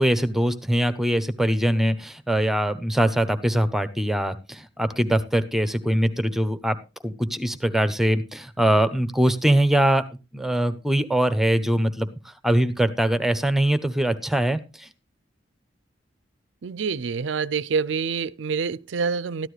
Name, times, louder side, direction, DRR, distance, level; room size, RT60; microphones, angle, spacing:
voice 1, 0.0-6.8 7.0-10.0 10.3-14.9, right 1 dB, ahead, 0.8 m, -22 dB
voice 2, 16.6-19.5, right 5 dB, 90° right, 0.5 m, -26 dB
13.5 x 11.5 x 3.2 m
head